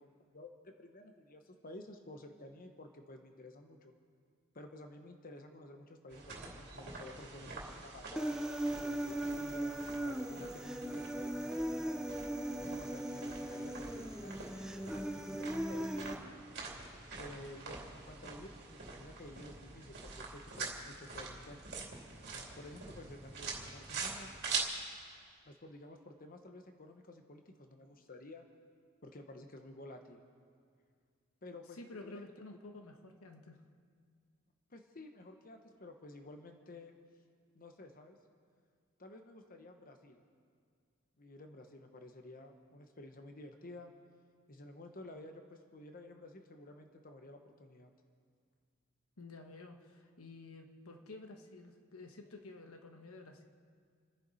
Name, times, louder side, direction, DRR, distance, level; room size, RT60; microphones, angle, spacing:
voice 1, 0.0-3.9 4.5-8.4 8.8-12.0 12.6-16.3 17.2-21.8 22.6-24.3 25.5-28.5 29.0-30.2 31.4-31.8 32.0-32.2 34.7-37.0 37.5-38.2 39.0-40.2 41.2-43.9 44.5-47.9, left 1 dB, 40° left, 5 dB, 1.1 m, -52 dB
sound 1, 6.1-24.6, right 4 dB, 50° right, 2.9 m, -45 dB
Human voice, 8.2-16.1, right 1 dB, 5° right, 0.5 m, -38 dB
voice 2, 31.7-33.6 49.2-53.4, left 2 dB, 85° left, 5 dB, 1.3 m, -51 dB
30.0 x 10.5 x 4.2 m, 2.1 s
head